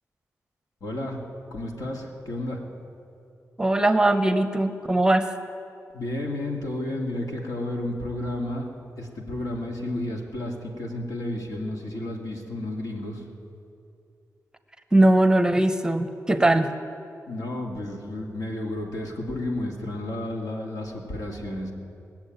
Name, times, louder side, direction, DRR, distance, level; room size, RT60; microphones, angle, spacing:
voice 1, 0.8-1.2 1.5-2.6 5.9-8.7 9.0-13.2 17.3-21.7, left 1 dB, 75° left, 0 dB, 2.3 m, -32 dB
voice 2, 3.6-5.3 14.9-16.7, right 1 dB, 10° right, 8 dB, 0.7 m, -20 dB
20.0 x 7.2 x 9.1 m, 2.6 s
wide cardioid pair, 105°, 6 cm